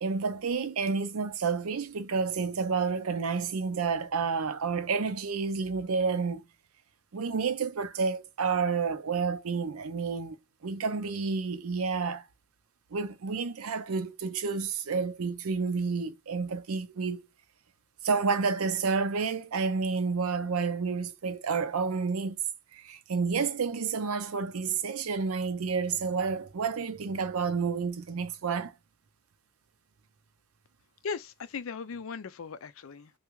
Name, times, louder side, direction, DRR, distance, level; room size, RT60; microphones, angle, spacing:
voice 1, 0.0-6.4 7.1-10.4 10.6-12.2 12.9-17.2 18.0-22.4 22.7-28.7, right 5 dB, 85° right, 0.6 m, -30 dB
voice 2, 31.0-33.1, left 5 dB, 65° left, 0.5 m, -38 dB
3.4 x 2.2 x 3.1 m
head